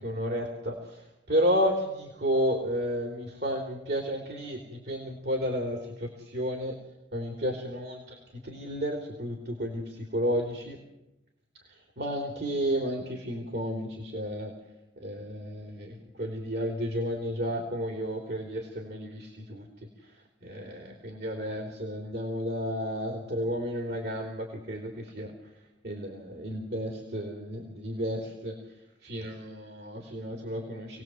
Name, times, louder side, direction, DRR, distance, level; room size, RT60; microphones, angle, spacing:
voice 1, 0.0-6.7 7.1-10.8 12.0-14.5 15.0-19.6 20.4-25.3 25.8-28.6 29.0-31.0, equal, 55° right, 1 dB, 3.4 m, -32 dB
28.5 x 19.0 x 7.8 m, 0.91 s
head